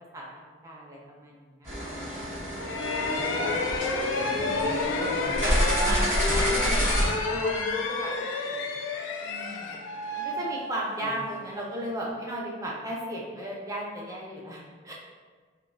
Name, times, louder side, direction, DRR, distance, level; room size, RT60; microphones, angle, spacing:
voice 1, 0.1-1.9 4.2-4.8 5.4-8.1 8.4-8.9 9.2-9.8 10.1-14.9, right 1 dB, 15° right, -4 dB, 0.4 m, -36 dB
sound 1, 1.6-7.1, equal, 35° right, 1.3 m, -28 dB
sound 2, 2.6-11.3, left 3 dB, 80° left, 0.3 m, -30 dB
voice 2, 3.0-3.5 4.1-5.9 11.0-11.2, right 1 dB, 55° right, -4 dB, 0.7 m, -41 dB
3.5 x 2.3 x 2.2 m, 1.5 s
head